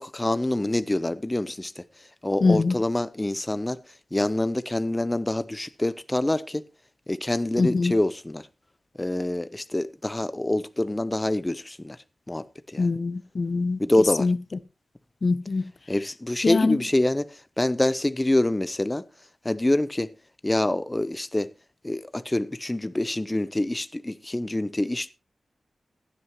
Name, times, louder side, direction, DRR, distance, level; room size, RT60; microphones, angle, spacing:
voice 1, 0.0-3.8 4.1-6.7 7.1-8.5 9.0-12.0 12.3-12.9 13.8-14.3 15.9-19.1 19.4-20.1 20.4-21.5 21.8-25.1, left 1 dB, 15° left, 0.6 m, -26 dB
voice 2, 2.4-2.8 7.6-7.9 12.8-13.8 14.2-14.4 15.2-15.6 16.4-16.8, left 3 dB, 55° left, 0.7 m, -23 dB
15.5 x 11.0 x 3.0 m
wide cardioid pair, 85°, 0 cm